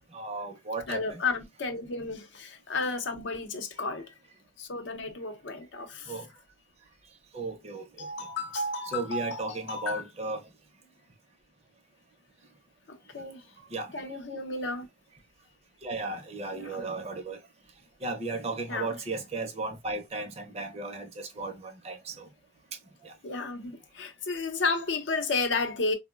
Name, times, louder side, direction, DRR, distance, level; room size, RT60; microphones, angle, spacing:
voice 1, 0.1-1.2 6.1-6.3 7.3-8.1 8.9-10.5 13.6-14.0 15.8-17.4 18.0-22.3 23.0-23.1, right 3 dB, 35° right, 0.5 m, -35 dB
voice 2, 0.9-4.1 4.6-6.1 8.0-10.0 12.9-13.4 13.9-14.9 16.5-16.8 18.7-18.9 23.2-25.9, left 3 dB, 75° left, 0.6 m, -32 dB
3.6 x 2.0 x 2.3 m
head